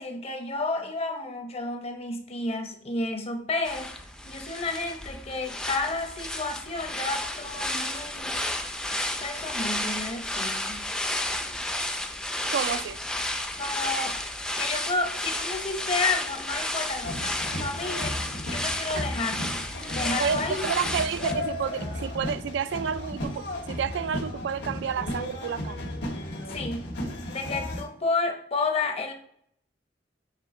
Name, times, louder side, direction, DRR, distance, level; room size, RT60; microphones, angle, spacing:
voice 1, 0.0-3.9 4.3-8.4 9.2-10.9 13.6-14.2 14.6-18.2 18.5-20.6 26.5-26.8 27.3-29.1, left 3 dB, 35° left, 0.8 m, -31 dB
sound 1, 3.7-21.3, left 1 dB, 5° left, 0.4 m, -32 dB
voice 2, 12.5-13.0 18.9-19.1 20.2-25.8, right 7 dB, 70° right, 0.3 m, -30 dB
sound 2, 17.0-27.8, left 1 dB, 65° left, 1.4 m, -34 dB
7.4 x 3.6 x 3.7 m
head